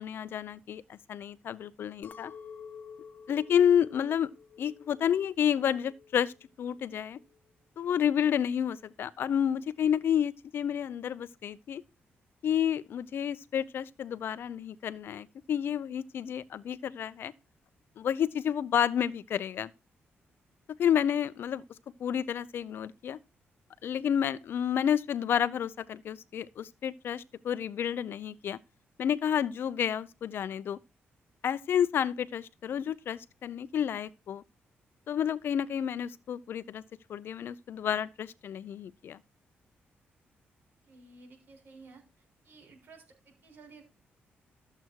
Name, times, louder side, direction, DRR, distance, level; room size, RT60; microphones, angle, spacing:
voice 1, 0.0-2.3 3.3-4.3 4.6-6.3 6.6-7.2 7.8-11.8 12.4-17.3 18.0-19.7 20.8-21.6 22.0-23.2 23.8-28.6 29.0-30.8 31.4-34.4 35.1-36.8 37.1-39.2, left 9 dB, 65° left, 0.7 m, -30 dB
Chink clink, 2.0-6.4 6.8-7.4, left 6 dB, 45° left, 1.2 m, -50 dB
voice 2, 40.8-42.0 42.4-43.8, right 3 dB, 55° right, 6.9 m, -54 dB
13.5 x 7.8 x 4.6 m
cardioid pair, 140°, 4 cm